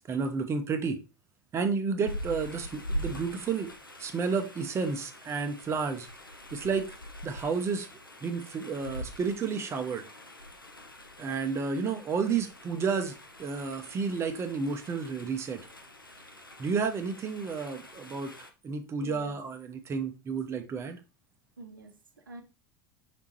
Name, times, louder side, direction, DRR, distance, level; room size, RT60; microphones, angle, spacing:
voice 1, 0.1-1.0 1.5-3.7 4.0-6.1 6.5-6.8 7.2-7.9 8.2-10.0 11.2-15.6 16.6-18.3 18.6-21.0, right 5 dB, 25° right, 0.7 m, -31 dB
sound 1, 2.0-18.5, equal, 90° left, 0.6 m, -43 dB
voice 2, 19.0-19.4 21.6-22.4, right 3 dB, 80° right, 0.7 m, -46 dB
5.0 x 3.6 x 2.8 m
figure-of-eight pair, 80°, 11 cm